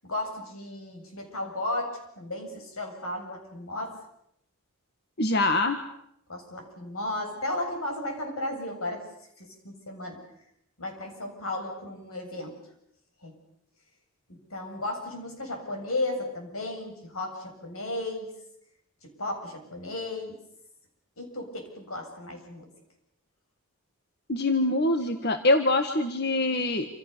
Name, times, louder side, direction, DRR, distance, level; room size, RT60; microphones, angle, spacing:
voice 1, 0.0-3.9 6.3-9.0 9.4-10.2 10.8-12.6 13.2-13.4 14.3-18.3 19.0-20.4 21.2-22.7, left 1 dB, 80° left, 4 dB, 7.6 m, -34 dB
voice 2, 5.2-5.8 24.3-26.9, left 2 dB, 50° left, 7 dB, 1.7 m, -24 dB
28.0 x 27.5 x 6.9 m, 0.76 s
head